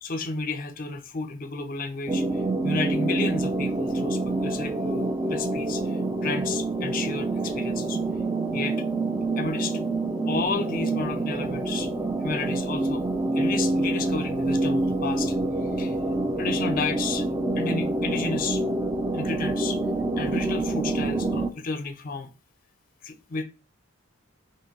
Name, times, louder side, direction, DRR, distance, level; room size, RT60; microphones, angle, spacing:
voice 1, 0.0-8.0 8.5-8.8 9.4-9.8 10.3-11.9 12.2-13.0 13.3-15.3 15.8-15.9 16.4-17.3 17.6-18.6 19.1-19.8 20.2-22.3 23.0-23.4, left 4 dB, 40° left, 0.5 m, -32 dB
sound 1, 2.1-21.5, right 2 dB, 15° right, 0.4 m, -27 dB
4.6 x 3.0 x 2.9 m
head